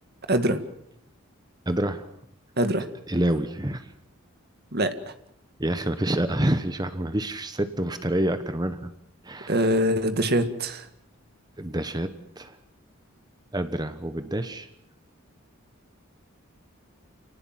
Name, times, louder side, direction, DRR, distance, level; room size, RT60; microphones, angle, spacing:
voice 1, 0.3-0.6 2.6-2.9 4.7-4.9 9.5-10.9, right 1 dB, 50° right, 8 dB, 2.1 m, -23 dB
voice 2, 1.7-2.1 3.1-3.9 5.6-8.9 9.2-9.7 11.6-12.6 13.5-14.7, right 1 dB, 20° right, 10 dB, 1.1 m, -27 dB
28.5 x 19.0 x 7.6 m, 0.75 s
head